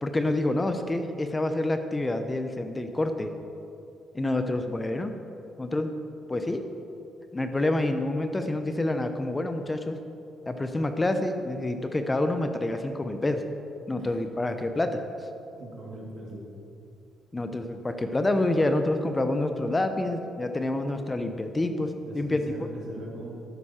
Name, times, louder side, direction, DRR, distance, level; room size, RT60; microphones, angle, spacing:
voice 1, 0.0-3.3 4.1-5.1 5.6-5.9 6.3-6.6 7.3-10.0 10.5-13.4 13.9-15.0 17.3-22.4, left 2 dB, 20° left, 7 dB, 0.8 m, -27 dB
voice 2, 15.6-16.5 22.1-23.3, right 1 dB, 65° right, -1 dB, 2.4 m, -40 dB
12.0 x 9.2 x 4.4 m, 2.7 s
cardioid pair, 90°, 0 cm